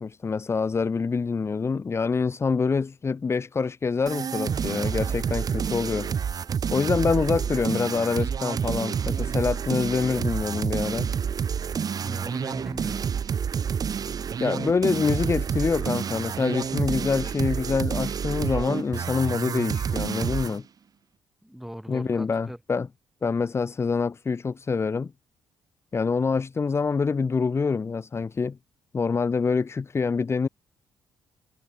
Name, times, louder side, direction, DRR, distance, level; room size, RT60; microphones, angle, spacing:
voice 1, 0.0-6.1 6.7-11.1 14.4-20.6 21.9-22.9 23.2-25.1 25.9-28.6 28.9-30.5, left 5 dB, 30° left, 0.6 m, -26 dB
sound 1, 4.1-20.6, right 7 dB, 40° right, 0.7 m, -29 dB
voice 2, 12.0-13.0 21.4-22.6, equal, 5° right, 3.6 m, -39 dB
figure-of-eight pair, 40°, 9 cm